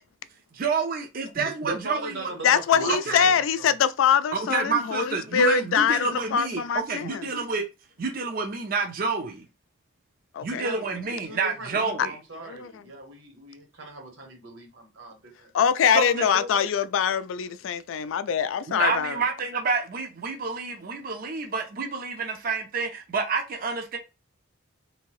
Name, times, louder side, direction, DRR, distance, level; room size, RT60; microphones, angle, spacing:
voice 1, 0.5-2.3 2.9-3.3 4.3-7.6 8.0-9.4 10.4-12.1 15.9-16.5 18.7-24.0, right 4 dB, 45° right, 0.5 m, -29 dB
voice 2, 1.3-3.2 3.6-3.7 10.5-15.5 15.8-15.9, right 2 dB, 80° right, 1.5 m, -39 dB
voice 3, 2.4-7.2 10.3-10.6 12.0-12.1 12.5-12.7 15.5-19.2, left 7 dB, 75° left, 0.3 m, -23 dB
2.8 x 2.7 x 3.0 m
head